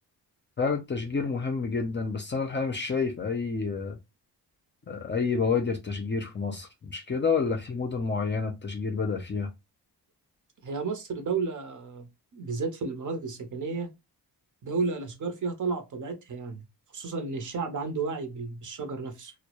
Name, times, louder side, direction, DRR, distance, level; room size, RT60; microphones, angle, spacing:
voice 1, 0.6-4.0 4.9-9.5, left 5 dB, 30° left, 0.5 m, -29 dB
voice 2, 10.6-12.1 12.3-13.9 14.6-16.6 16.9-19.3, right 4 dB, 50° right, 0.7 m, -32 dB
2.1 x 2.1 x 2.8 m
cardioid pair, 95°, 41 cm